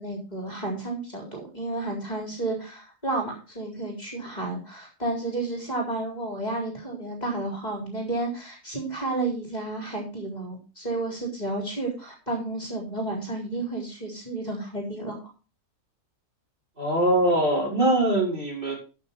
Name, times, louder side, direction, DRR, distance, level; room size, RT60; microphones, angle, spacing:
voice 1, 0.0-15.2, right 2 dB, 25° left, 0 dB, 4.0 m, -31 dB
voice 2, 16.8-18.7, right 1 dB, 30° right, -3 dB, 5.1 m, -22 dB
14.0 x 6.6 x 4.4 m, 0.34 s
omnidirectional pair, 1.7 m